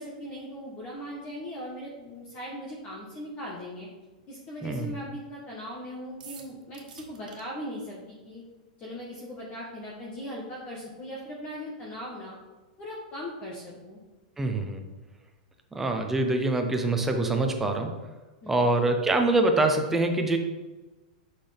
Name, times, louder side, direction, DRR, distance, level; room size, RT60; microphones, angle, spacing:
voice 1, 0.0-3.9 4.3-8.4 8.8-12.4 12.8-14.0 18.4-18.7, equal, 25° left, -3 dB, 1.2 m, -39 dB
voice 2, 4.6-4.9 14.4-14.8 15.7-18.0 18.5-20.4, right 2 dB, 5° right, 4 dB, 0.6 m, -25 dB
sound 1, 6.2-7.4, right 6 dB, 90° right, 1.3 m, -47 dB
6.4 x 5.8 x 3.4 m, 1.2 s
supercardioid pair, 165°, 4 cm